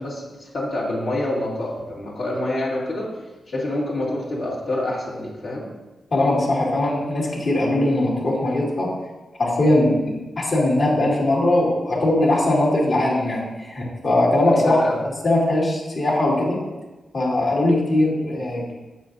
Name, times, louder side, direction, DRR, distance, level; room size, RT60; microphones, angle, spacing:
voice 1, 0.0-3.1 3.5-5.7 14.5-14.9, left 1 dB, 75° left, -6 dB, 2.2 m, -27 dB
voice 2, 6.1-8.9 9.4-16.6 17.1-18.7, left 1 dB, 60° left, -4 dB, 2.2 m, -20 dB
7.9 x 5.8 x 2.6 m, 1.1 s
cardioid pair, 55°, 0 cm